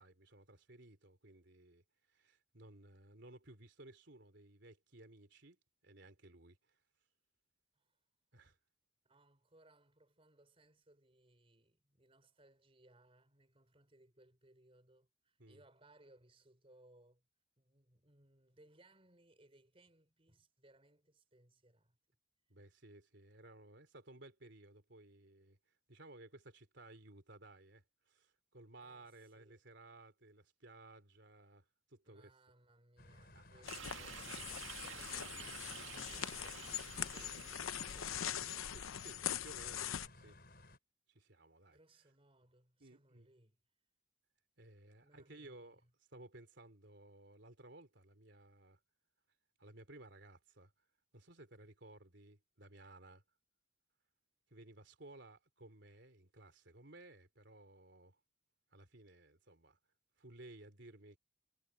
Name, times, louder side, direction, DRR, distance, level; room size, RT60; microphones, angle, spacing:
voice 1, 0.0-1.8 2.1-6.8 8.3-8.6 15.4-15.6 22.5-25.6 25.9-32.3 33.3-33.6 37.1-37.8 38.5-40.4 41.1-41.8 42.8-43.3 44.6-45.8 46.1-48.8 49.6-50.7 51.1-53.2 54.5-58.2 58.7-59.8 60.2-61.2, right 2 dB, 60° right, 3.8 m, -58 dB
voice 2, 9.0-17.2 17.6-22.0 28.8-29.6 32.0-38.6 41.7-43.6 45.0-45.9, right 1 dB, 30° right, 4.5 m, -67 dB
sound 1, 33.0-40.8, left 1 dB, 50° left, 6.3 m, -59 dB
sound 2, 33.6-40.1, left 10 dB, 90° left, 0.7 m, -42 dB
sound 3, 33.7-39.2, right 8 dB, 75° right, 1.9 m, -51 dB
head